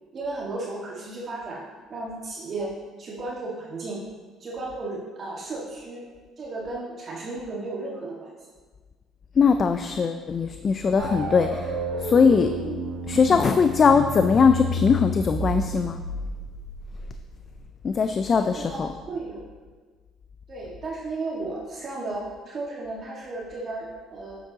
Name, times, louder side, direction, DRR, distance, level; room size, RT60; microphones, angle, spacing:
voice 1, 0.1-1.6 1.9-2.7 3.0-4.0 4.4-6.0 6.4-8.3 18.4-19.5 20.5-24.4, right 2 dB, 45° right, -5 dB, 1.7 m, -34 dB
voice 2, 9.4-11.7 12.0-12.5 13.1-16.0 17.8-18.9, left 5 dB, 40° left, 8 dB, 0.4 m, -20 dB
sound 1, 11.0-17.6, equal, 80° right, 1.2 m, -31 dB
8.4 x 8.1 x 2.9 m, 1.4 s
cardioid pair, 95°, 0 cm